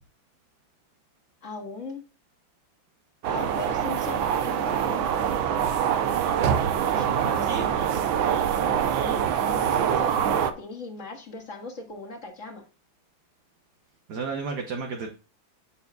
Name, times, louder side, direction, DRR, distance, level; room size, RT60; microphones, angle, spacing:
voice 1, 1.4-2.0 3.3-5.1 6.9-7.8 8.9-12.6, left 3 dB, 40° left, 2 dB, 1.9 m, -39 dB
sound 1, 3.2-10.5, right 8 dB, 85° right, 1.6 m, -24 dB
voice 2, 6.9-8.0 14.1-15.1, right 5 dB, 60° right, 2 dB, 1.5 m, -33 dB
9.3 x 6.8 x 2.3 m, 0.35 s
omnidirectional pair, 2.1 m